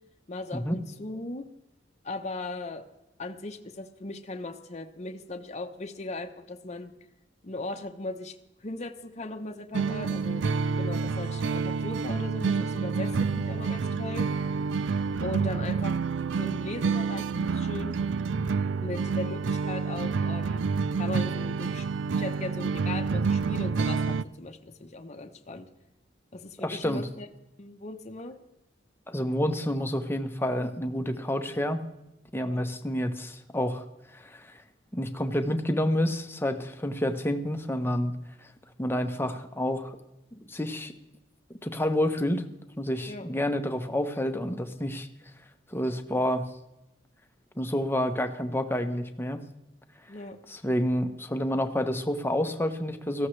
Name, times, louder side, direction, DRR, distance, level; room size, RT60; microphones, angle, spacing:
voice 1, 0.3-1.4 2.0-2.8 3.2-6.9 7.4-8.3 8.6-10.5 10.8-14.3 15.2-16.0 16.4-18.0 18.8-20.6 21.0-21.9 22.1-25.7 26.3-27.3 27.6-28.4 32.5-32.6 43.1-43.3 50.1-50.4, left 2 dB, 40° left, 5 dB, 0.9 m, -38 dB
sound 1, 9.7-24.2, right 5 dB, 85° right, 0.4 m, -28 dB
voice 2, 26.6-27.1 29.1-31.8 32.3-33.9 34.1-34.6 34.9-38.2 38.4-38.5 38.8-40.0 40.3-40.9 41.6-42.5 42.8-45.1 45.7-46.5 47.6-49.4 50.5-53.3, left 1 dB, 15° left, 7 dB, 0.9 m, -29 dB
17.5 x 14.5 x 3.3 m, 0.93 s
head